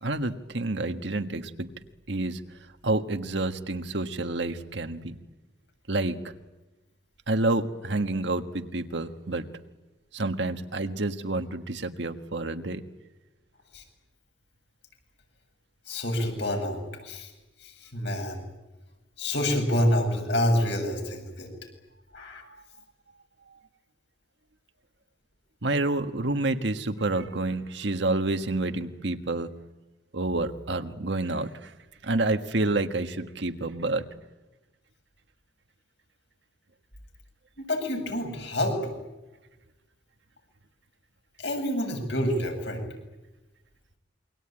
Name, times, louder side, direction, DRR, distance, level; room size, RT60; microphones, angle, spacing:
voice 1, 0.0-1.7 2.1-2.4 2.8-5.2 5.9-6.2 7.3-9.4 10.1-12.8 25.6-29.5 30.1-31.7 32.0-34.0, right 2 dB, 65° right, 7 dB, 1.6 m, -28 dB
voice 2, 15.9-17.3 17.6-18.4 19.2-21.5 22.1-22.4 37.6-38.9 41.4-42.8, left 1 dB, 65° left, 3 dB, 7.5 m, -27 dB
28.0 x 24.0 x 9.0 m, 1.1 s
head